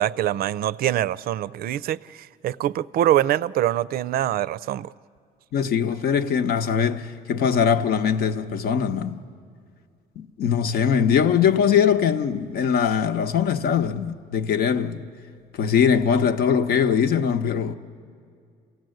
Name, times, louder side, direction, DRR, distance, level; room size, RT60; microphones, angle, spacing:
voice 1, 0.0-4.9, right 12 dB, 65° right, 0.5 m, -24 dB
voice 2, 5.5-9.2 10.2-15.0 15.5-17.7, left 7 dB, 65° left, 1.0 m, -21 dB
27.5 x 17.0 x 7.8 m
cardioid pair, 110°, 17 cm